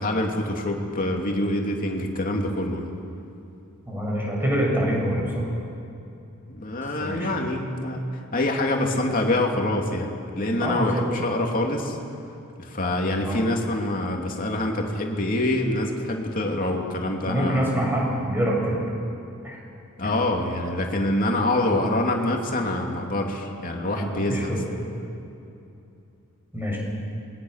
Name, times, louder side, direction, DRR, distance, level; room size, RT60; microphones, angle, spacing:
voice 1, 0.0-2.9 6.5-10.1 10.3-12.0 12.6-17.7 20.0-24.5, left 1 dB, 40° left, 1 dB, 2.8 m, -25 dB
voice 2, 3.9-5.5 7.0-7.3 10.6-11.0 13.2-13.4 17.3-18.8 19.4-19.6 23.9-24.6 26.5-26.8, right 1 dB, 10° right, -3 dB, 6.8 m, -25 dB
27.5 x 21.5 x 6.6 m, 2.7 s
head